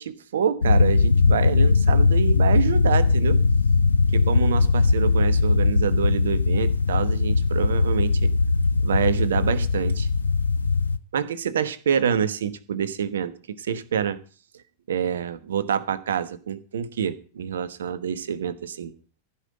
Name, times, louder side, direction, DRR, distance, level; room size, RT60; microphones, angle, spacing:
voice 1, 0.0-3.4 4.1-8.3 8.8-10.1 11.1-14.2 14.9-18.9, right 8 dB, 65° right, 15 dB, 1.1 m, -27 dB
sound 1, 0.6-11.0, left 4 dB, 75° left, 0.6 m, -20 dB
15.0 x 5.7 x 7.8 m, 0.37 s
figure-of-eight pair, 90°, 0 cm